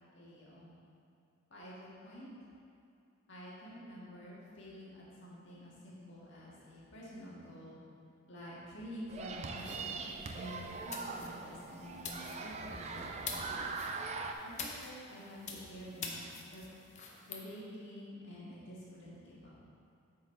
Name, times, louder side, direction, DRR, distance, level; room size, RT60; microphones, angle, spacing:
voice 1, 0.1-0.8 1.5-2.3 3.3-7.8 8.3-13.6 14.4-16.6 17.3-19.5, equal, 60° left, -7 dB, 1.7 m, -49 dB
sound 1, 9.1-14.3, right 4 dB, 35° right, 0.4 m, -41 dB
sound 2, 9.6-17.4, left 4 dB, 35° left, 0.7 m, -47 dB
8.4 x 4.1 x 4.4 m, 2.5 s
head